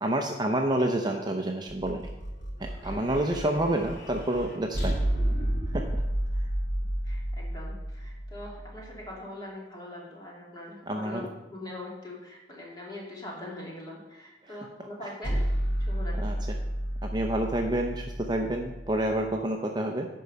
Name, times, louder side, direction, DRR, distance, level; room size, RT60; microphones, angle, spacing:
voice 1, 0.0-2.1 2.6-5.0 5.7-6.0 10.9-11.3 14.4-14.6 16.2-16.4 17.0-20.1, right 1 dB, 25° right, 3 dB, 0.6 m, -28 dB
sound 1, 1.7-9.0 15.2-19.3, equal, 85° left, 2.4 m, -31 dB
voice 2, 7.0-15.4 15.9-16.4, left 1 dB, 25° left, -4 dB, 2.8 m, -42 dB
11.0 x 4.7 x 6.7 m, 1.1 s
head